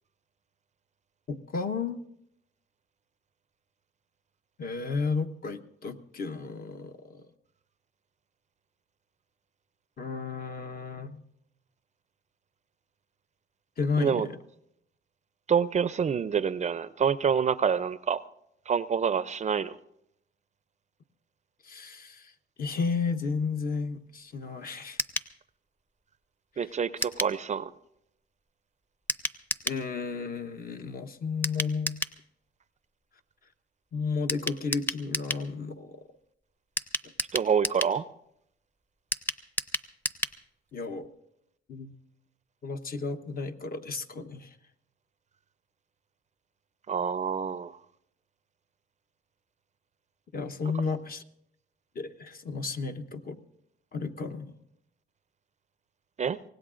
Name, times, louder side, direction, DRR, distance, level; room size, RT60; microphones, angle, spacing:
voice 1, 1.3-2.0 4.6-7.3 10.0-11.2 13.8-14.4 21.6-25.0 26.5-26.6 29.6-32.0 33.9-36.1 40.7-41.1 41.7-41.9 42.6-44.6 50.3-51.2 51.9-53.4 53.9-54.5, left 4 dB, 45° left, 7 dB, 1.0 m, -33 dB
voice 2, 15.5-18.2 18.7-19.8 26.6-27.7 37.3-38.1 46.9-47.8 56.2-56.4, right 7 dB, 35° right, 15 dB, 0.5 m, -27 dB
sound 1, 25.0-25.3 27.0-27.4 29.1-29.8 31.4-32.2 34.3-35.5 36.8-38.0 39.1-40.4 40.7-40.8 41.0-41.1, left 1 dB, 10° left, 0.7 m, -32 dB
25.0 x 18.0 x 2.5 m, 0.77 s
cardioid pair, 90°, 20 cm